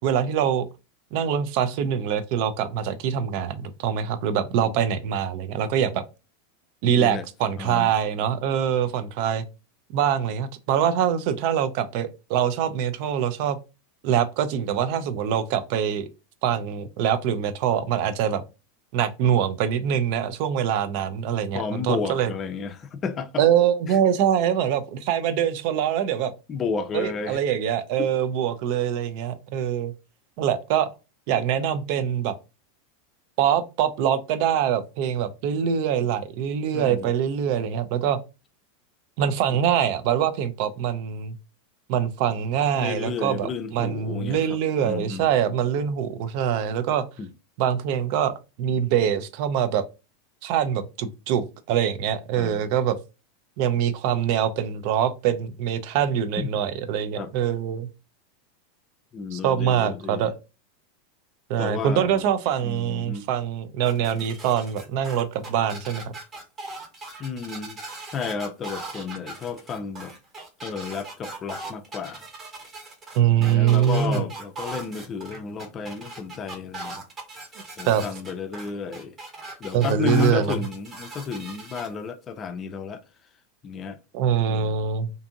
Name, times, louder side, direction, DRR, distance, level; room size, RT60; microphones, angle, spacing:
voice 1, 0.0-0.7 1.1-6.0 6.8-9.4 9.9-13.6 14.0-16.1 16.4-18.4 18.9-22.3 23.4-26.3 26.9-29.9 30.4-30.9 31.3-32.4 33.4-38.2 39.2-41.4 41.9-47.0 47.6-49.8 50.4-53.0 53.6-57.9 59.3-60.3 61.5-66.1 73.2-74.3 77.9-78.0 79.7-80.6 84.1-85.1, right 9 dB, 60° right, 0.4 m, -24 dB
voice 2, 6.9-7.2 7.6-7.9 21.5-23.4 23.9-24.0 26.5-27.4 36.7-37.1 39.5-39.6 42.7-45.3 47.2-47.3 52.4-52.7 56.4-56.5 57.2-57.3 59.1-60.3 61.6-62.3 62.6-63.3 67.2-67.8 68.1-70.1 70.6-72.2 73.4-77.0 77.8-79.2 79.6-83.0 83.6-84.0 84.5-84.9, left 5 dB, 30° left, 0.4 m, -32 dB
sound 1, 63.8-81.9, right 2 dB, 30° right, 0.9 m, -39 dB
2.6 x 2.5 x 2.6 m
hypercardioid pair, 100°, 0 cm